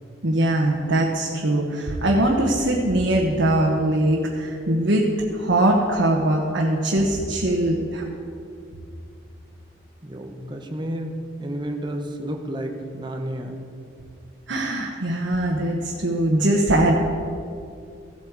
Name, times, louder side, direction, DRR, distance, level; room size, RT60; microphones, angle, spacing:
voice 1, 0.2-5.1 5.3-8.0 14.5-16.9, right 1 dB, 85° right, -2 dB, 1.2 m, -21 dB
voice 2, 10.0-13.6, right 1 dB, 25° right, 3 dB, 1.0 m, -31 dB
15.5 x 8.4 x 4.8 m, 2.5 s
head